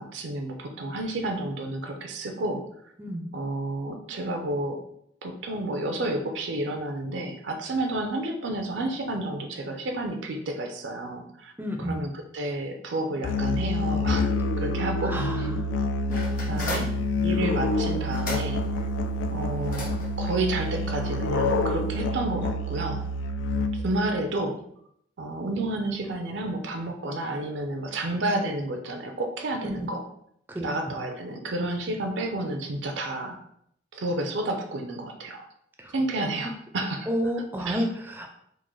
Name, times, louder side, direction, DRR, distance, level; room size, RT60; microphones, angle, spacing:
voice 1, 0.0-2.6 3.3-4.8 5.2-11.5 11.8-14.3 14.6-15.5 16.5-16.9 17.2-18.6 19.3-19.9 20.2-23.0 23.7-24.6 25.2-30.1 30.6-33.4 33.9-35.4 35.9-37.1 37.7-37.8, right 2 dB, 75° right, 4 dB, 0.5 m, -30 dB
voice 2, 11.6-12.0 15.0-15.7 16.1-16.7 29.6-29.9 30.5-30.7 35.8-35.9 37.1-38.3, equal, 10° right, 2 dB, 0.4 m, -31 dB
Musical instrument, 13.2-24.0, left 2 dB, 90° left, 0.3 m, -27 dB
sound 1, 16.1-22.0, left 1 dB, 45° left, 0.9 m, -39 dB
3.6 x 2.2 x 3.1 m, 0.71 s
head